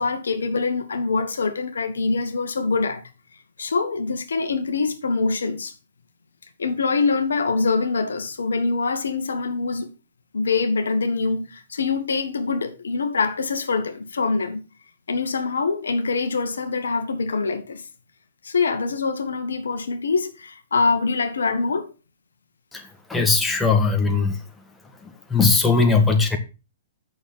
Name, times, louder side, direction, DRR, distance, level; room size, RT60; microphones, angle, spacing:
voice 1, 0.0-3.0 3.6-5.7 6.6-9.9 10.3-14.6 15.1-17.8 18.4-21.9, left 4 dB, 70° left, 1.5 m, -24 dB
voice 2, 23.1-24.4 25.0-26.4, left 4 dB, 10° left, 1.6 m, -19 dB
9.0 x 6.6 x 5.6 m
figure-of-eight pair, 115°, 0 cm